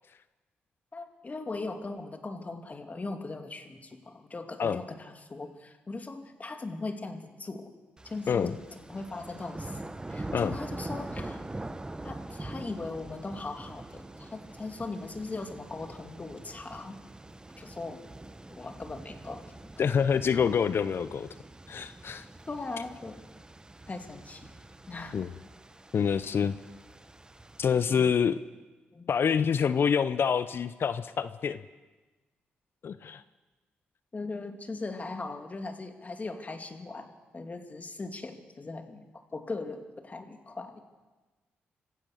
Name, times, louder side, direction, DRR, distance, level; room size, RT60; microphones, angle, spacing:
voice 1, 0.9-7.7 8.0-11.4 12.0-17.0 17.6-18.0 18.5-19.8 22.5-23.2 23.9-24.4 24.9-25.2 28.9-29.2 34.1-39.0 39.3-40.8, left 3 dB, 35° left, 6 dB, 2.7 m, -39 dB
sound 1, 8.0-27.8, right 2 dB, 20° right, 1.3 m, -44 dB
voice 2, 19.8-21.3 21.7-22.3 25.1-25.3 25.9-26.6 27.6-28.4 29.1-31.6 32.8-33.2, left 7 dB, 60° left, 14 dB, 0.7 m, -26 dB
25.5 x 16.0 x 6.7 m, 1.2 s
supercardioid pair, 50°, 4 cm